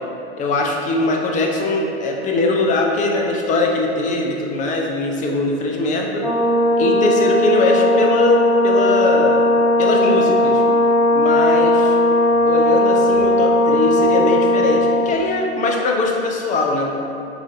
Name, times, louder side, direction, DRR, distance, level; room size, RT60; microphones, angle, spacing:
voice 1, 0.4-6.3 6.8-9.4 9.8-10.6 11.1-12.0 12.4-16.9, left 2 dB, 25° left, 0 dB, 0.5 m, -20 dB
Brass instrument, 6.2-15.1, left 1 dB, 70° left, 1.5 m, -17 dB
7.1 x 2.6 x 2.6 m, 2.9 s
figure-of-eight pair, 90°, 33 cm